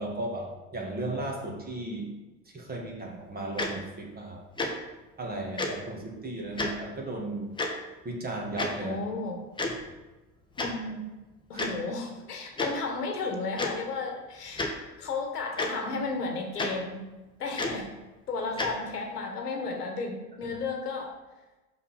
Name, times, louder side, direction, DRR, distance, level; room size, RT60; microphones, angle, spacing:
voice 1, 0.0-2.1 2.5-4.4 5.2-7.5 8.0-9.0 11.5-11.7 20.4-20.5, right 2 dB, 20° right, -1 dB, 1.7 m, -35 dB
Tick-tock, 3.6-3.7 4.6-4.7 5.6-5.7 6.6-6.7 7.6-7.7 8.6-8.7 9.6-9.8 10.6-10.7 11.6-11.7 12.6-12.7 13.6-13.7 14.5-14.7 15.6-15.7 16.6-16.7 17.6-17.8 18.6-18.7, left 2 dB, 10° left, 1.0 m, -29 dB
voice 2, 8.8-9.4 10.6-11.0 11.5-14.7 15.0-17.0 17.4-17.9 18.3-21.1, left 3 dB, 75° left, 3 dB, 1.4 m, -33 dB
5.9 x 5.8 x 4.3 m, 1.1 s
figure-of-eight pair, 80°, 47 cm